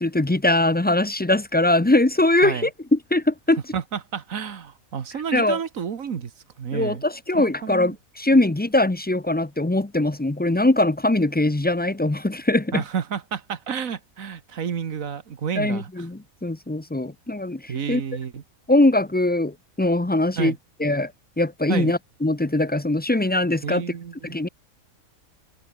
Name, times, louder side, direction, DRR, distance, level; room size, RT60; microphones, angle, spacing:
voice 1, 0.0-3.6 5.3-5.6 6.7-12.8 15.6-18.0 18.7-20.5 20.8-21.1 21.4-23.8 24.2-24.5, left 2 dB, 15° left, 0.3 m, -21 dB
voice 2, 3.7-6.3 6.6-7.0 7.3-8.0 12.7-16.0 17.7-18.4 20.4-20.6 21.7-21.9 23.6-24.4, right 7 dB, 70° right, 1.7 m, -30 dB
open air
omnidirectional pair, 1.5 m